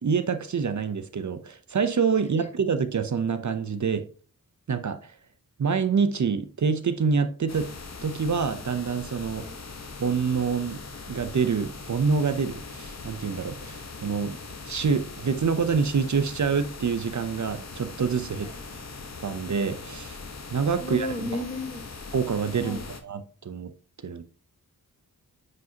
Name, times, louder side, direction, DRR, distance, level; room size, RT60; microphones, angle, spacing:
voice 1, 0.0-4.1 4.7-5.1 5.6-7.7 8.0-9.5 10.0-14.4 14.7-18.5 19.2-20.2 20.5-21.4 22.1-23.7 24.0-24.2, right 5 dB, 55° right, 0.7 m, -26 dB
sound 1, 7.5-23.0, left 4 dB, 45° left, 1.2 m, -41 dB
voice 2, 20.7-21.8 22.6-22.8, left 2 dB, 20° left, 1.3 m, -34 dB
9.2 x 5.3 x 2.8 m
wide cardioid pair, 130°, 36 cm